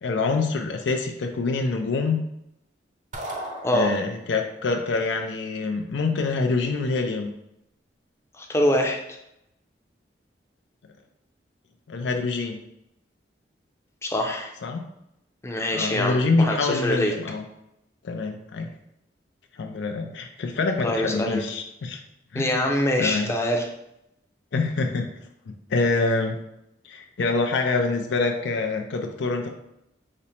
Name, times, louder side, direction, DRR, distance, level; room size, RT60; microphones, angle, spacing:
voice 1, 0.0-2.2 3.7-7.3 11.9-12.6 14.6-14.8 15.7-17.4 18.0-18.7 19.6-22.0 22.3-22.6 23.0-23.3 24.5-25.1 25.7-26.4 26.8-29.5, left 3 dB, 85° left, 4 dB, 0.5 m, -25 dB
sound 1, 3.1-4.4, right 1 dB, 45° right, 0.6 m, -36 dB
voice 2, 8.4-9.0 14.0-14.5 15.4-17.1 20.8-21.4 22.3-23.7, left 1 dB, 15° left, 1 dB, 0.5 m, -24 dB
5.0 x 2.0 x 4.3 m, 0.82 s
head